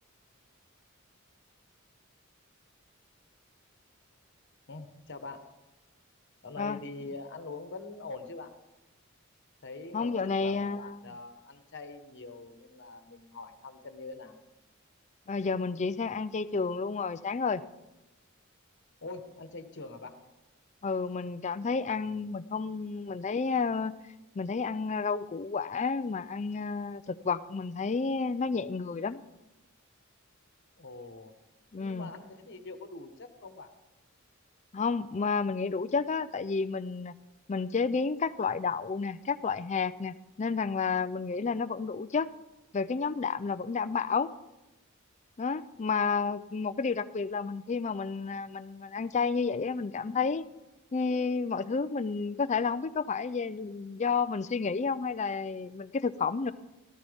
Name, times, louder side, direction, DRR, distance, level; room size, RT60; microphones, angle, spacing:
voice 1, 4.7-5.6 6.4-8.5 9.6-14.4 19.0-20.2 21.8-22.2 30.8-31.3 31.8-33.7, left 3 dB, 60° left, 7 dB, 1.3 m, -44 dB
voice 2, 9.9-10.9 15.3-17.6 20.8-23.9 24.4-29.2 31.7-32.1 34.7-37.1 37.5-42.3 42.7-44.3 45.4-50.4 50.9-56.5, left 5 dB, 35° left, 14 dB, 0.5 m, -31 dB
17.5 x 13.5 x 3.5 m, 0.99 s
head